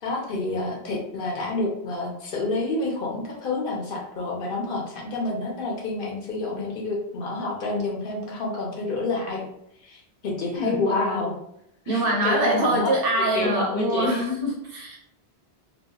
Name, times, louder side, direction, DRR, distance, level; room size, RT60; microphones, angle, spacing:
voice 1, 0.0-9.4 9.8-11.4 11.9-14.2, left 2 dB, 60° left, -2 dB, 0.8 m, -28 dB
voice 2, 11.9-15.0, right 1 dB, 65° right, -1 dB, 0.9 m, -24 dB
2.8 x 2.3 x 2.2 m, 0.75 s
omnidirectional pair, 1.1 m